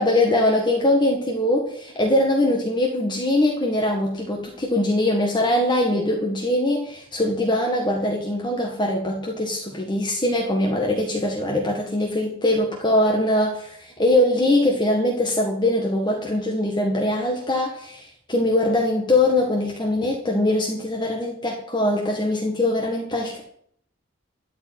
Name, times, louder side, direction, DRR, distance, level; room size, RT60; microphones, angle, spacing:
voice 1, 0.0-23.4, left 1 dB, 25° left, -1 dB, 1.7 m, -22 dB
13.0 x 5.3 x 9.1 m, 0.66 s
head